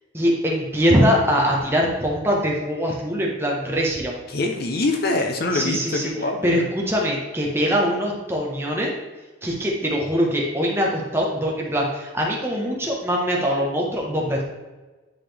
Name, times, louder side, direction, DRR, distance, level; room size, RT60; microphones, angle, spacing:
voice 1, 0.1-4.1 5.5-6.1 6.4-8.9 9.4-14.4, equal, 10° right, -2 dB, 1.2 m, -22 dB
voice 2, 4.3-6.6, left 2 dB, 50° left, 4 dB, 0.7 m, -24 dB
10.0 x 4.3 x 3.4 m, 1.2 s
head